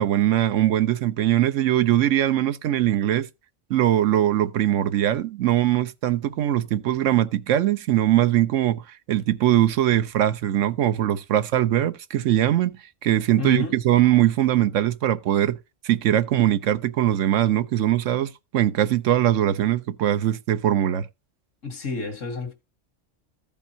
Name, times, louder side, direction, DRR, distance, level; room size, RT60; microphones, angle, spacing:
voice 1, 0.0-3.3 3.7-8.8 9.1-12.7 13.0-15.6 15.8-21.1, right 12 dB, 80° right, 1.1 m, -21 dB
voice 2, 13.4-13.8 21.6-22.5, left 4 dB, 85° left, 2.1 m, -29 dB
14.5 x 5.4 x 2.8 m
omnidirectional pair, 1.3 m